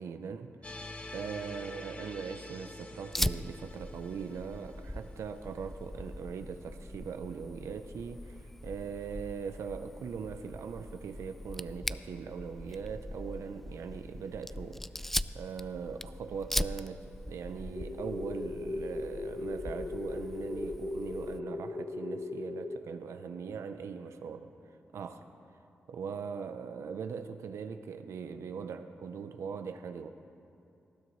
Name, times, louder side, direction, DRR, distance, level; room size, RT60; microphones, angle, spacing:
voice 1, 0.0-24.5 24.9-25.2 25.9-30.1, right 6 dB, 85° right, 8 dB, 0.6 m, -41 dB
sound 1, 0.6-5.7, left 2 dB, 25° left, 1.0 m, -47 dB
Fire, 3.1-21.4, left 1 dB, 5° left, 0.3 m, -40 dB
sound 2, 17.8-22.8, left 2 dB, 50° left, 1.0 m, -38 dB
19.5 x 13.5 x 3.1 m, 2.6 s
cardioid pair, 65°, 5 cm